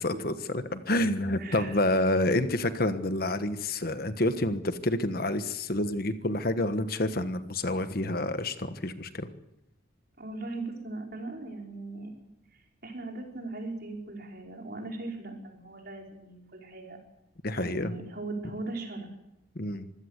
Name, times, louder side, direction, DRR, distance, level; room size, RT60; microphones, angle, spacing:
voice 1, 0.0-9.3 17.4-17.9 19.5-19.9, left 1 dB, 45° left, 10 dB, 1.3 m, -28 dB
voice 2, 1.4-1.9 10.2-12.1 12.8-17.0 17.6-19.1, right 2 dB, 50° right, 2 dB, 5.2 m, -39 dB
25.0 x 16.5 x 8.3 m, 0.88 s
head